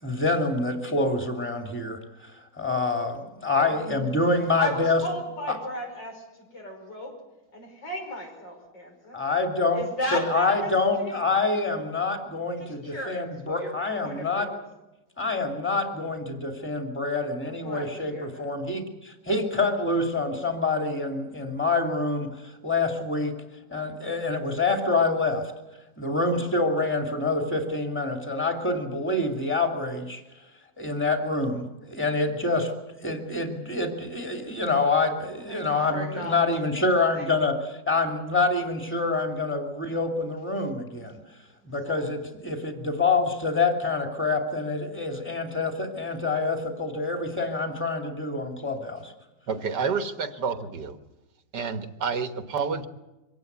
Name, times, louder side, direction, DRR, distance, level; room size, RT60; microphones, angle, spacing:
voice 1, 0.0-5.0 5.5-5.6 9.1-9.8 10.1-14.5 15.2-23.3 23.7-25.5 26.0-30.2 30.8-32.7 33.0-41.2 41.7-49.1, left 3 dB, 5° left, 3 dB, 2.6 m, -26 dB
voice 2, 3.7-4.1 4.5-7.1 7.5-9.2 9.7-11.3 12.6-13.7 14.0-14.6 17.4-18.5 35.5-37.3 41.8-42.1, left 1 dB, 80° left, 1 dB, 6.4 m, -36 dB
voice 3, 49.5-51.0 51.5-52.9, right 5 dB, 70° right, 8 dB, 1.9 m, -29 dB
24.5 x 18.0 x 8.2 m, 1.0 s
omnidirectional pair, 1.9 m